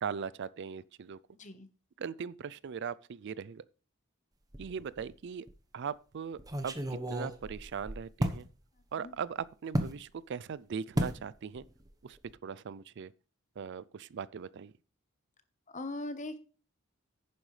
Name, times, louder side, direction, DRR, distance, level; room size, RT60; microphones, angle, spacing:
voice 1, 0.0-1.2 2.0-3.6 4.6-5.5 5.7-6.7 7.1-8.5 8.9-11.6 12.0-12.2 12.4-13.1 13.6-14.7, right 6 dB, 60° right, 0.4 m, -39 dB
voice 2, 1.3-1.7 9.0-9.1 15.7-16.4, left 2 dB, 35° left, 1.2 m, -40 dB
sound 1, 4.5-5.1 5.5-5.6 6.4-8.4 9.7-10.0 11.0-11.2 11.6-11.9 12.1-12.3, equal, 20° right, 1.1 m, -33 dB
11.0 x 9.4 x 3.3 m
head